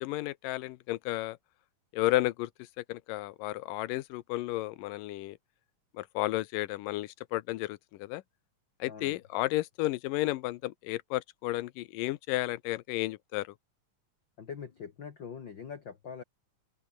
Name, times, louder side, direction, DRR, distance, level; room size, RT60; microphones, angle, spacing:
voice 1, 0.0-1.4 1.9-2.5 2.8-5.4 5.9-8.2 8.8-13.5, left 17 dB, 80° left, 2.4 m, -32 dB
voice 2, 8.9-9.2 14.4-16.2, left 6 dB, 45° left, 1.8 m, -43 dB
open air
omnidirectional pair, 3.9 m